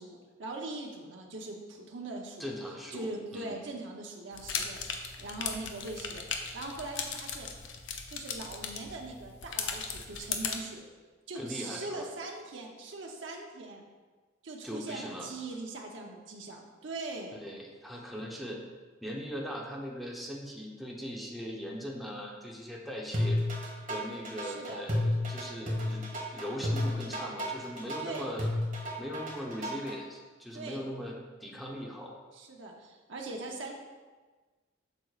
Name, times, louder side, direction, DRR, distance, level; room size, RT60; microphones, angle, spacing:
voice 1, 0.0-2.5 2.9-6.2 6.5-7.5 8.1-10.8 11.3-13.8 14.4-17.4 24.4-24.8 28.0-28.4 30.5-30.9 32.3-33.7, right 2 dB, 85° right, 0 dB, 0.7 m, -41 dB
voice 2, 2.4-3.6 11.3-12.1 14.6-15.3 17.4-18.6 19.0-23.4 23.9-26.0 26.3-28.5 29.0-32.2, equal, ahead, -2 dB, 0.7 m, -40 dB
sound 1, 4.3-10.6, left 6 dB, 85° left, 0.7 m, -37 dB
sound 2, 23.1-29.9, left 1 dB, 45° right, 1.4 m, -31 dB
7.8 x 6.2 x 2.4 m, 1.4 s
head